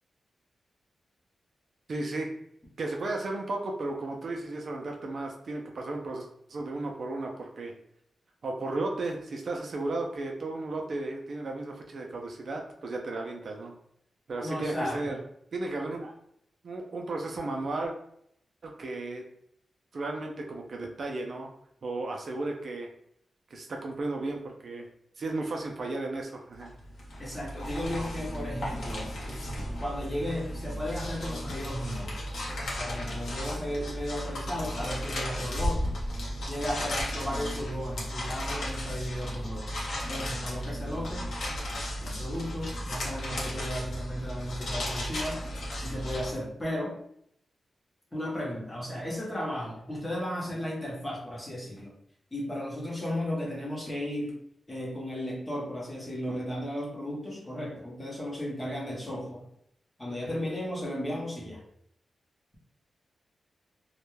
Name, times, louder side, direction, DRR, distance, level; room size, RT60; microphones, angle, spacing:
voice 1, 1.9-2.3 2.8-7.7 8.4-13.7 14.3-15.2 15.5-16.1 16.6-17.9 18.6-19.2 19.9-21.5 21.8-22.9 23.5-24.9 25.2-26.7, right 2 dB, 50° right, 1 dB, 0.3 m, -34 dB
voice 2, 14.4-15.2 27.2-29.1 29.8-32.3 32.8-35.9 36.5-39.8 40.1-41.2 42.0-47.0 48.1-51.9 52.3-54.3 54.7-59.5 60.0-61.6, equal, 15° left, -3 dB, 0.7 m, -35 dB
sound 1, 26.6-46.3, equal, 80° left, 0.7 m, -35 dB
2.2 x 2.1 x 3.0 m, 0.72 s
wide cardioid pair, 170°, 0 cm